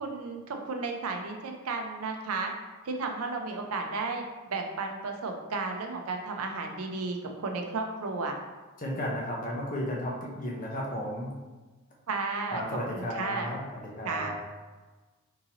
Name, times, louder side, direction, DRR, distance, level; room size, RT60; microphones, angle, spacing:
voice 1, 0.0-2.5 2.8-4.2 4.5-8.4 12.1-12.6 12.9-13.5 14.0-14.3, right 3 dB, 75° right, 3 dB, 0.5 m, -33 dB
voice 2, 8.8-11.3 12.5-14.4, equal, 40° left, -3 dB, 0.7 m, -34 dB
3.7 x 2.7 x 2.8 m, 1.3 s
head